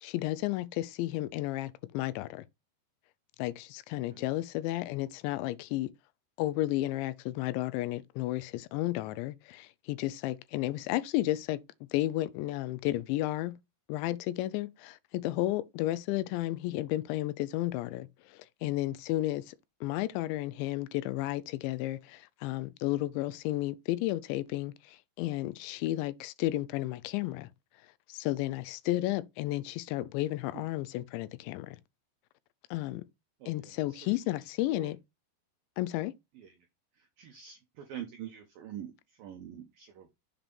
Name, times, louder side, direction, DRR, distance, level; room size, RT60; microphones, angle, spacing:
voice 1, 0.0-2.4 3.4-5.9 6.4-11.6 11.9-13.6 13.9-19.6 19.8-27.5 28.1-31.8 32.7-33.1 33.5-35.0 35.8-36.1, left 16 dB, 85° left, 2.8 m, -32 dB
voice 2, 33.4-34.0 34.7-34.9 36.4-36.5 37.2-38.9 39.2-40.1, right 10 dB, 85° right, 2.0 m, -45 dB
7.3 x 2.5 x 5.2 m
omnidirectional pair, 5.2 m